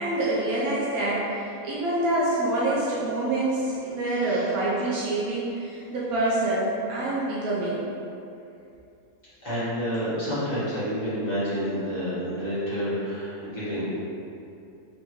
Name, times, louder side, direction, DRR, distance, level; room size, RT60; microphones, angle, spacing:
voice 1, 0.0-7.8, right 2 dB, 80° right, -7 dB, 1.2 m, -26 dB
voice 2, 4.1-4.5 9.4-14.0, equal, 30° left, -13 dB, 1.5 m, -29 dB
3.9 x 3.4 x 3.0 m, 2.6 s
omnidirectional pair, 1.5 m